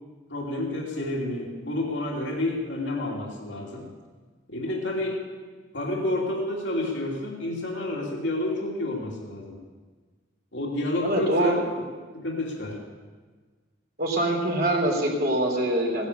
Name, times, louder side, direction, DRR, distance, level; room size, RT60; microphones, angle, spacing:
voice 1, 0.3-3.9 4.5-5.3 5.7-9.6 10.5-11.6 12.1-12.8, left 1 dB, 80° left, -1 dB, 2.9 m, -29 dB
voice 2, 11.0-11.6 14.0-16.1, right 1 dB, 60° right, 0 dB, 3.6 m, -24 dB
17.0 x 11.5 x 6.8 m, 1.4 s
head